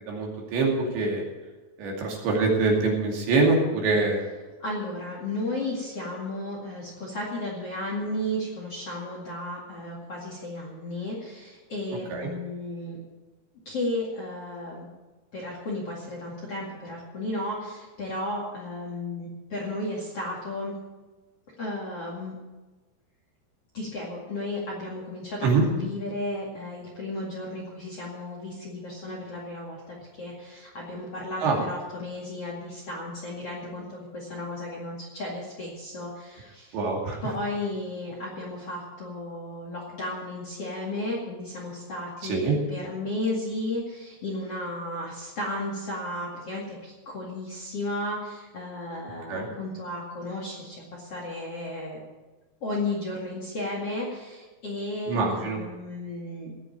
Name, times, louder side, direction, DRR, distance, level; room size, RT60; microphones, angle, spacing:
voice 1, 0.1-1.2 1.8-4.2 12.1-12.3 25.4-25.6 31.4-31.6 36.7-37.2 42.2-42.5 49.3-49.5 55.1-55.6, right 3 dB, 70° right, -1 dB, 4.7 m, -24 dB
voice 2, 4.6-13.0 13.7-14.9 15.3-20.7 21.6-22.3 23.7-36.8 37.2-52.0 52.6-56.5, left 1 dB, 45° left, -2 dB, 2.3 m, -34 dB
17.5 x 6.9 x 8.7 m, 1.2 s
omnidirectional pair, 5.5 m